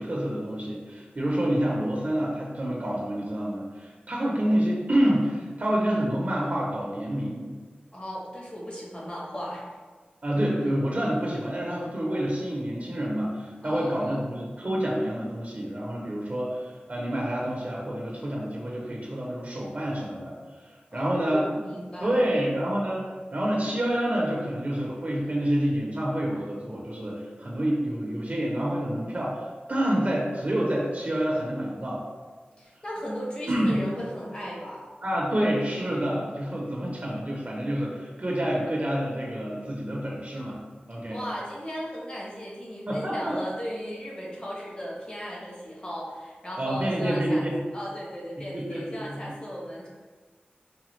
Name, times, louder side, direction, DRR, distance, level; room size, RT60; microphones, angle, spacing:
voice 1, 0.0-7.5 10.2-21.5 22.0-23.0 23.3-32.0 33.5-33.8 35.0-40.6 40.9-41.2 42.9-43.4 46.6-47.6 48.4-49.2, right 1 dB, 45° right, -4 dB, 0.6 m, -28 dB
voice 2, 7.9-9.7 13.6-14.2 20.9-22.4 32.6-34.8 41.1-49.9, equal, 30° left, -4 dB, 1.0 m, -36 dB
4.8 x 2.2 x 3.1 m, 1.4 s
wide cardioid pair, 80°, 4 cm